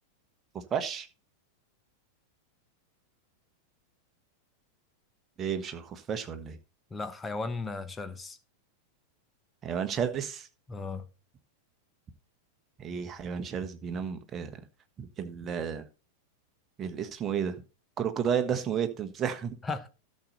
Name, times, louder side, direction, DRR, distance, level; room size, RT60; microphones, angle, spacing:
voice 1, 0.5-1.1 5.4-6.6 9.6-10.5 12.8-14.5 15.0-15.8 16.8-17.6 18.0-19.5, right 7 dB, 25° right, 1.3 m, -32 dB
voice 2, 6.9-8.4 10.7-11.1 19.6-19.9, left 3 dB, 15° left, 1.1 m, -35 dB
13.0 x 6.5 x 4.2 m
figure-of-eight pair, 90°, 0 cm